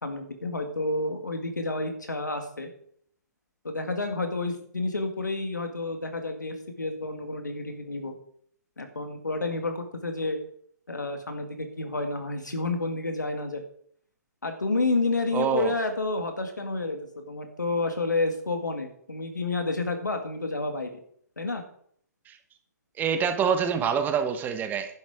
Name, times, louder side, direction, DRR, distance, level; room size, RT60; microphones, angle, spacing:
voice 1, 0.0-2.7 3.6-8.2 8.8-10.4 10.9-13.6 14.4-20.9 21.4-21.6, left 2 dB, 90° left, 6 dB, 2.1 m, -30 dB
voice 2, 15.3-15.7 22.3-22.4 23.0-25.0, right 7 dB, 20° right, 8 dB, 1.2 m, -26 dB
11.0 x 7.7 x 5.0 m, 0.63 s
figure-of-eight pair, 125°, 9 cm